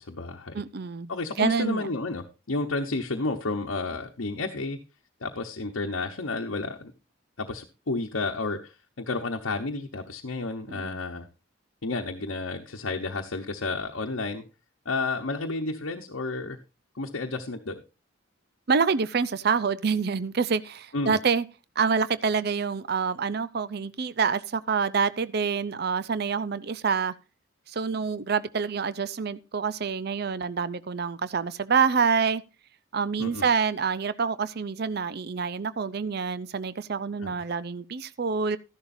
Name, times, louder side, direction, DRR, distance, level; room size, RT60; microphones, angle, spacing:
voice 1, 0.0-0.5 1.1-4.8 5.2-6.9 7.4-11.3 11.8-14.4 14.8-16.6 17.0-17.8 20.9-21.2 33.2-33.4 37.2-37.3, left 3 dB, 80° left, 1.0 m, -31 dB
voice 2, 0.5-1.1 1.4-1.9 10.7-11.0 18.7-21.4 21.8-27.1 27.7-32.4 32.9-38.6, right 5 dB, 50° right, 0.5 m, -27 dB
13.0 x 11.0 x 2.6 m
head